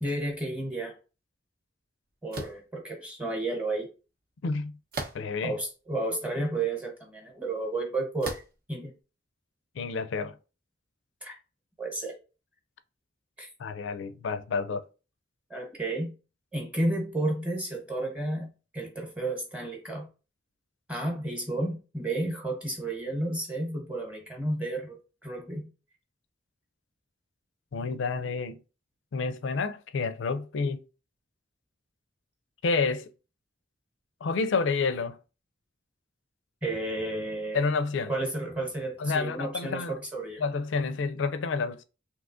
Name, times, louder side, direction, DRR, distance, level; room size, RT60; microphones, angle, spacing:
voice 1, 0.0-1.0 2.2-3.9 5.4-8.4 8.7-8.9 11.2-11.3 11.8-12.1 13.4-13.5 15.5-16.1 16.5-18.5 18.7-20.1 20.9-25.7 36.6-37.6 38.1-40.4, right 2 dB, 5° right, 1.0 m, -32 dB
sound 1, 2.3-2.7 4.9-5.5 6.2-6.3 8.2-8.6, right 2 dB, 50° right, 0.7 m, -36 dB
voice 2, 4.4-4.7 5.1-5.5 9.8-10.3 13.6-14.8 27.7-28.6 29.1-30.8 32.6-33.1 34.2-35.2 37.5-38.1 39.0-39.9 40.4-41.8, left 4 dB, 75° left, 0.4 m, -29 dB
3.5 x 2.9 x 2.5 m
head